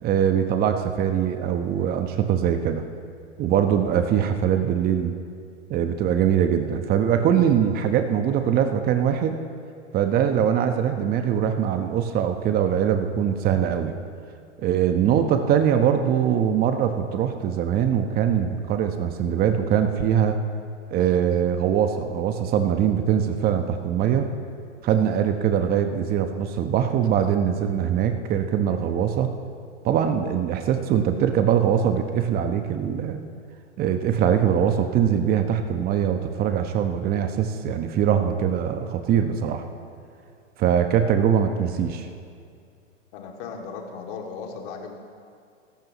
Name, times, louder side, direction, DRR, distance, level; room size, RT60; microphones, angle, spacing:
voice 1, 0.0-2.8 3.4-5.1 5.7-9.4 9.9-13.9 14.6-20.4 20.9-24.3 24.8-29.3 29.8-33.2 33.8-39.6 40.6-42.1, right 8 dB, 25° right, 7 dB, 1.1 m, -22 dB
voice 2, 43.1-44.9, left 5 dB, 45° left, 1 dB, 2.7 m, -36 dB
27.0 x 14.5 x 3.1 m, 2.3 s
hypercardioid pair, 120°, 37 cm